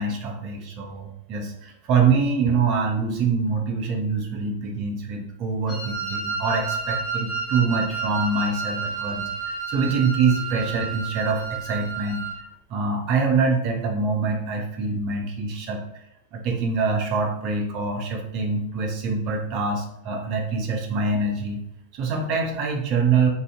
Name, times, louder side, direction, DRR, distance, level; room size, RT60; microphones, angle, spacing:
voice 1, 0.0-12.2 12.7-15.8 16.3-21.6 21.9-23.3, right 4 dB, 40° right, 2 dB, 0.5 m, -25 dB
Wind instrument woodwind instrument, 5.7-12.4, right 5 dB, 5° left, 0.8 m, -31 dB
2.5 x 2.3 x 2.4 m, 0.80 s
figure-of-eight pair, 90°, 0 cm